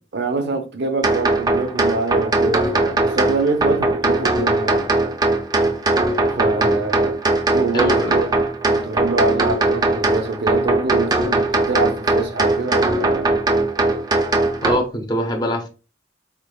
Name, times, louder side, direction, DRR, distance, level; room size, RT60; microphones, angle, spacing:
voice 1, 0.1-4.9 6.2-7.2 7.4-8.3 8.6-13.4, right 3 dB, 65° right, 0.6 m, -25 dB
sound 1, 1.0-14.8, right 2 dB, 20° right, 0.5 m, -20 dB
voice 2, 6.6-7.1 7.7-8.2 14.6-15.7, equal, 25° left, 0.7 m, -24 dB
3.8 x 3.3 x 2.2 m
head